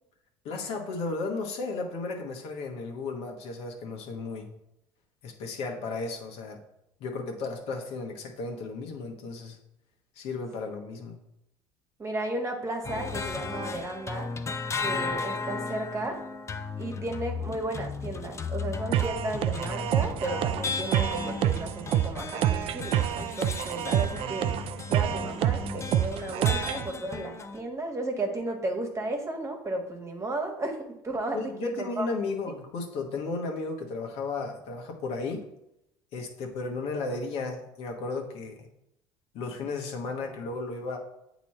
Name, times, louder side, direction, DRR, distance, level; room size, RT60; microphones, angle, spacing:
voice 1, 0.4-4.5 5.2-6.6 7.0-9.6 10.1-11.2 31.3-35.4 36.1-38.7 39.3-41.0, left 3 dB, 65° left, 2 dB, 1.2 m, -34 dB
voice 2, 12.0-14.3 14.8-16.2 16.8-24.6 24.9-32.1, right 2 dB, 25° right, 3 dB, 1.4 m, -34 dB
sound 1, 12.8-27.6, left 4 dB, 25° left, 0.6 m, -35 dB
sound 2, 18.9-26.9, right 11 dB, 60° right, 0.4 m, -28 dB
8.2 x 3.0 x 4.3 m, 0.83 s
supercardioid pair, 85°, 11 cm